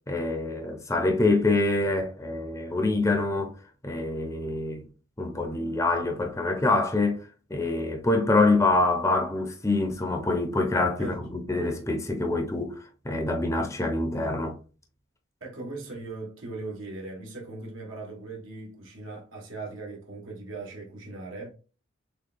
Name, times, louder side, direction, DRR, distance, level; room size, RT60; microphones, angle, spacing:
voice 1, 0.1-3.5 3.8-4.8 5.2-7.2 7.5-12.8 13.0-14.5, left 2 dB, 15° left, 0.6 m, -25 dB
voice 2, 15.4-21.5, right 3 dB, 80° right, 1.6 m, -39 dB
6.5 x 2.2 x 2.5 m
head